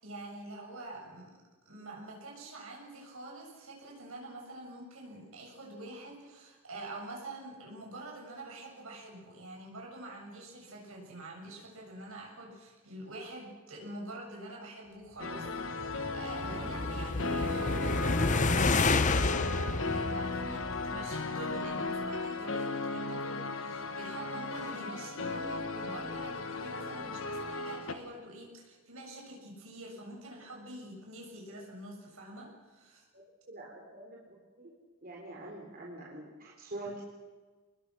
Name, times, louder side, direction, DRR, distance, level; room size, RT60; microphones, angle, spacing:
voice 1, 0.0-1.3 1.7-33.0, right 1 dB, 75° right, -1 dB, 7.4 m, -46 dB
sound 1, 15.2-27.9, left 3 dB, 65° left, 1.5 m, -36 dB
sound 2, 15.6-21.1, left 3 dB, 35° left, 0.8 m, -30 dB
voice 2, 33.5-34.7 35.0-37.0, right 1 dB, 45° right, -2 dB, 4.0 m, -45 dB
28.5 x 20.5 x 6.4 m, 1.3 s
head